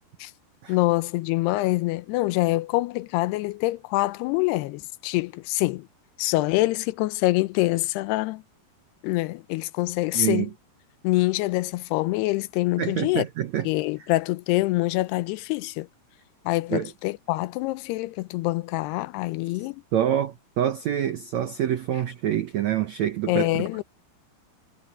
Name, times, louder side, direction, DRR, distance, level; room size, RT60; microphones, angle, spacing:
voice 1, 0.7-5.9 6.2-8.4 9.0-10.5 11.0-13.3 13.6-15.9 16.5-19.8 23.3-23.8, left 19 dB, 80° left, 2.7 m, -25 dB
voice 2, 10.1-10.5 12.8-13.7 16.7-16.9 19.9-23.8, right 11 dB, 85° right, 1.5 m, -26 dB
omnidirectional pair, 4.7 m